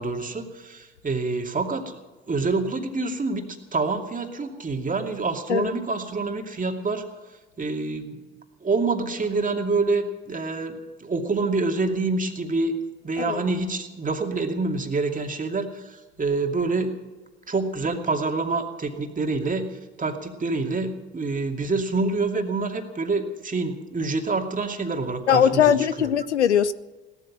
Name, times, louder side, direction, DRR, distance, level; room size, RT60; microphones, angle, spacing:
voice 1, 0.0-7.0 7.6-8.2 8.6-12.8 13.0-17.0 17.5-26.1, right 3 dB, 25° right, 2.5 m, -27 dB
voice 2, 25.3-26.7, left 8 dB, 90° left, 0.6 m, -20 dB
17.5 x 13.0 x 6.3 m
figure-of-eight pair, 60°, 34 cm